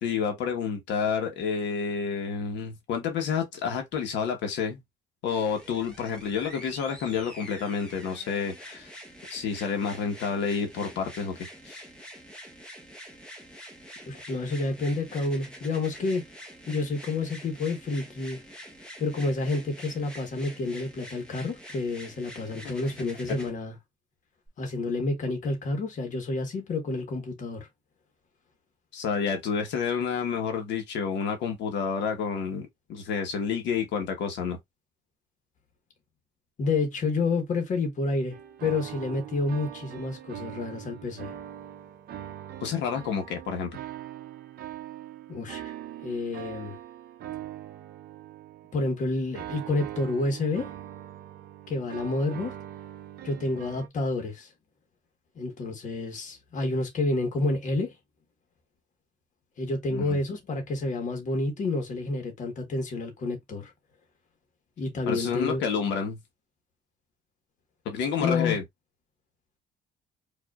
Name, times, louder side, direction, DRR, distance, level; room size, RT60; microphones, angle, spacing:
voice 1, 0.0-4.8 5.2-8.9 9.3-11.4 11.6-11.9 22.4-22.7 28.9-34.6 42.6-43.8 59.9-60.2 65.1-66.2 67.8-68.6, left 6 dB, 85° left, 1.2 m, -29 dB
sound 1, 5.3-23.5 24.5-24.6, equal, 5° left, 1.1 m, -46 dB
voice 2, 14.1-16.2 16.7-18.4 19.0-23.8 24.6-27.7 36.6-38.4 38.6-41.3 45.3-45.7 46.0-46.8 48.7-50.7 51.7-52.5 53.2-54.5 55.4-57.9 59.6-63.7 64.8-65.6 68.2-68.6, left 3 dB, 45° left, 1.3 m, -29 dB
sound 2, 38.3-53.9, right 12 dB, 60° right, 0.6 m, -42 dB
5.0 x 2.6 x 2.4 m
cardioid pair, 160°, 18 cm